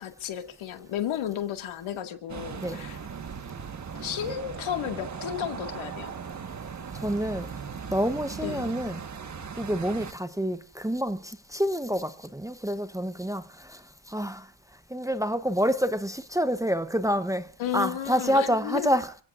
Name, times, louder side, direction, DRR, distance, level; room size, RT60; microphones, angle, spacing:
voice 1, 0.0-3.0 4.0-6.1 8.4-8.7 17.6-19.0, left 10 dB, 85° left, 2.2 m, -33 dB
sound 1, 2.3-10.1, right 6 dB, 35° right, 1.5 m, -38 dB
voice 2, 6.9-7.5 7.9-9.0 9.6-13.8 14.1-14.5 14.9-19.2, equal, 5° right, 0.8 m, -28 dB
29.5 x 17.0 x 2.5 m
cardioid pair, 125°, 46 cm